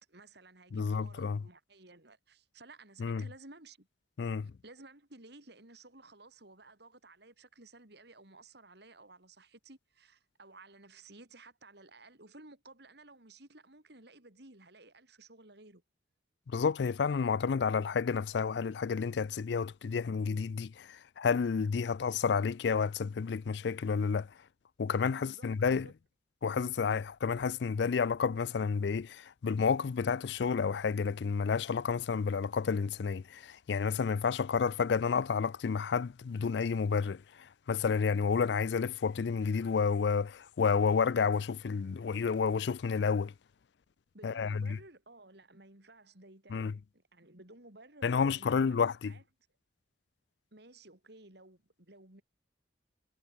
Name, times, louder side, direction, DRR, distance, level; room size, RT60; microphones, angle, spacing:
voice 1, 0.1-3.9 4.4-15.8 25.2-25.9 44.1-48.8 49.1-49.2 50.5-52.2, right 2 dB, 60° right, 3.7 m, -55 dB
voice 2, 0.7-1.4 3.0-3.2 4.2-4.5 16.5-24.3 24.8-25.9 26.4-43.3 44.2-44.8 46.5-46.7 48.0-49.1, left 5 dB, 60° left, 0.4 m, -30 dB
head